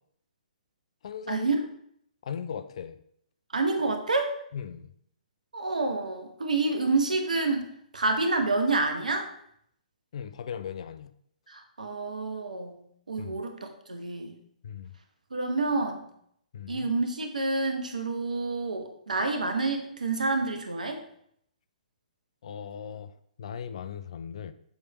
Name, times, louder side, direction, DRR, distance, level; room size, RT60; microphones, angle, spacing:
voice 1, 1.0-1.5 2.2-3.0 4.5-4.9 10.1-11.1 13.2-13.4 14.6-14.9 16.5-16.9 22.4-23.1 23.4-24.5, left 7 dB, 50° left, 12 dB, 0.4 m, -38 dB
voice 2, 3.5-4.3 5.5-7.6 7.9-9.3 11.5-12.8 13.1-14.4 15.3-16.1 16.7-21.0, right 3 dB, 70° right, 5 dB, 1.0 m, -28 dB
7.0 x 3.3 x 4.1 m, 0.69 s
figure-of-eight pair, 125°, 4 cm